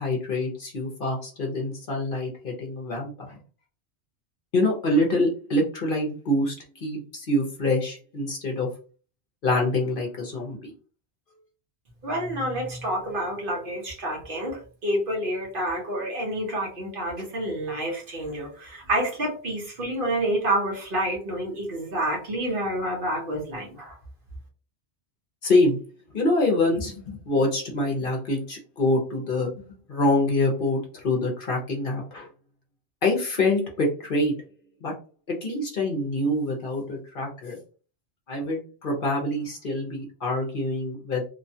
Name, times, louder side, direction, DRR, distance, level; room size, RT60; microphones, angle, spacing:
voice 1, 0.0-3.4 4.5-8.7 9.4-10.7 25.4-25.8 26.1-29.5 29.9-32.3 33.0-34.3 34.8-34.9 35.4-37.6 38.3-41.2, left 2 dB, 55° left, 0 dB, 0.9 m, -25 dB
voice 2, 12.0-23.9, right 1 dB, 50° right, -1 dB, 1.0 m, -28 dB
3.0 x 2.2 x 2.7 m, 0.37 s
omnidirectional pair, 1.2 m